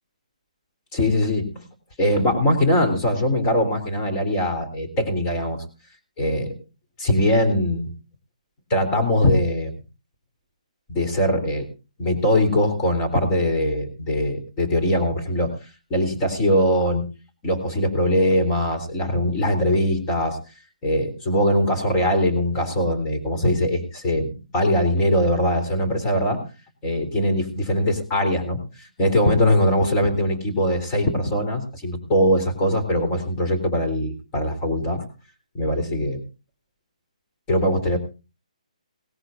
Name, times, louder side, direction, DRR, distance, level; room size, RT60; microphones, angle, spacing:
voice 1, 0.9-1.7 2.0-5.6 6.2-6.5 7.0-7.9 8.7-9.7 10.9-11.7 12.0-17.1 17.4-20.4 20.8-26.4 26.8-35.1 35.5-36.2 37.5-38.0, equal, 25° left, 5 dB, 3.6 m, -21 dB
18.0 x 16.0 x 2.6 m, 0.31 s
hypercardioid pair, 155°, 4 cm